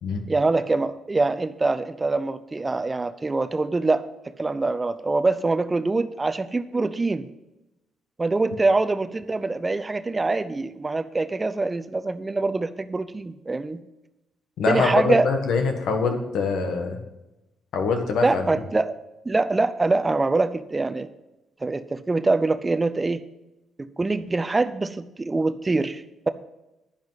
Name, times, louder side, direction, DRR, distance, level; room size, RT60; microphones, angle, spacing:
voice 1, 0.3-4.0 4.4-7.3 8.2-13.8 14.7-15.3 18.2-19.0 19.3-21.1 21.6-23.2 23.8-26.3, right 3 dB, 20° right, 11 dB, 0.6 m, -24 dB
voice 2, 14.6-17.0 17.7-18.5, left 4 dB, 75° left, 5 dB, 1.7 m, -24 dB
10.5 x 10.5 x 4.1 m, 0.96 s
cardioid pair, 90°, 0 cm